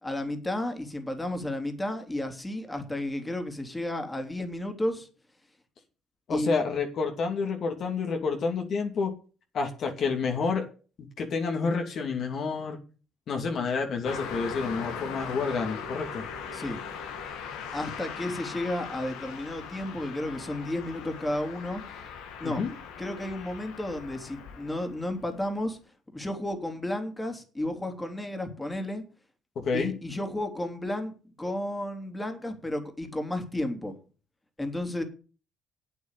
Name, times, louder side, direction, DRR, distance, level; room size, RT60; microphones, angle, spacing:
voice 1, 0.0-5.1 6.3-6.6 16.5-16.8 17.7-21.8 22.4-22.6 23.0-25.8 26.1-29.0 29.7-34.0 34.6-35.0, left 1 dB, 15° left, 6 dB, 3.0 m, -32 dB
voice 2, 6.3-9.1 9.5-10.7 11.2-12.8 13.3-16.3 22.4-22.7 29.6-29.9, left 4 dB, 55° left, 3 dB, 2.7 m, -29 dB
Car passing by, 14.0-25.5, left 6 dB, 80° left, 2.1 m, -40 dB
8.6 x 8.3 x 8.3 m, 0.37 s
hypercardioid pair, 60°, 0 cm